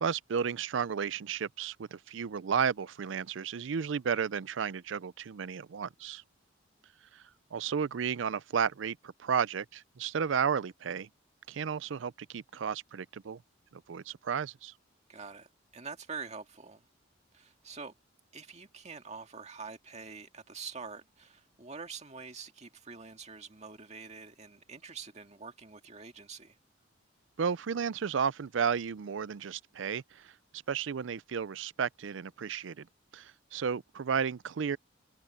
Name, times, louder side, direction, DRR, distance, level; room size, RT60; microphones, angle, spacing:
voice 1, 0.0-6.2 7.1-7.2 7.5-11.1 11.5-13.4 13.7-14.7 27.4-32.9 33.1-34.8, right 6 dB, 75° right, 0.5 m, -33 dB
voice 2, 15.1-16.8 17.3-17.9 18.3-26.6, right 5 dB, 35° right, 2.0 m, -45 dB
head